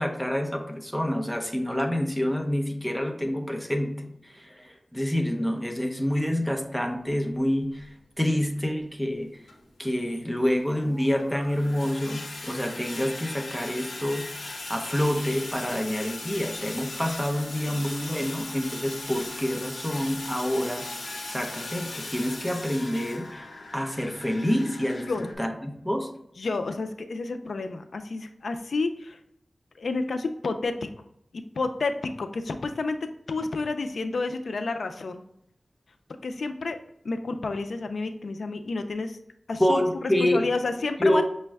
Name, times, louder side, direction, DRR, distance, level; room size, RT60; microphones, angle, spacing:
voice 1, 0.0-7.9 8.2-9.3 9.8-14.3 14.7-23.5 23.7-25.1 25.4-26.1 39.6-40.5 41.0-41.2, equal, ahead, 2 dB, 0.6 m, -27 dB
sound 1, 7.5-7.6 8.4-8.5 9.4-25.3, left 2 dB, 75° left, 0.8 m, -39 dB
voice 2, 26.4-29.2 29.8-30.9 31.3-33.0 33.3-35.2 36.2-36.8 37.0-39.2 39.5-39.8 40.2-41.2, left 3 dB, 90° left, 7 dB, 0.3 m, -30 dB
5.9 x 2.1 x 3.4 m, 0.75 s
wide cardioid pair, 75°, 0 cm